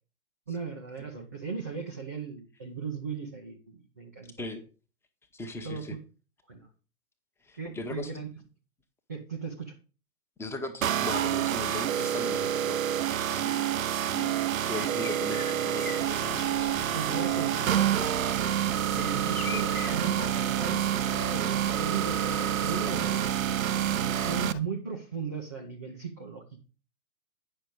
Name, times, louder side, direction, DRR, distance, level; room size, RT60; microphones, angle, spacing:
voice 1, 0.5-4.3 5.6-5.9 6.5-6.7 7.5-8.3 9.1-9.7 16.9-18.1 18.9-20.9 21.3-23.2 24.0-26.7, right 5 dB, 15° right, -1 dB, 0.4 m, -37 dB
voice 2, 5.3-6.0 7.4-8.2 10.4-12.8 13.1-13.7 14.0-14.4 14.6-16.0, left 3 dB, 5° left, 5 dB, 0.9 m, -38 dB
sound 1, 10.8-24.5, right 11 dB, 65° right, 0.6 m, -28 dB
sound 2, 13.7-14.0 14.6-20.1, left 7 dB, 70° left, 1.1 m, -44 dB
Boat Water vehicle, 16.0-24.6, left 6 dB, 45° left, 1.3 m, -42 dB
9.2 x 5.9 x 5.1 m, 0.35 s
figure-of-eight pair, 115°, 45 cm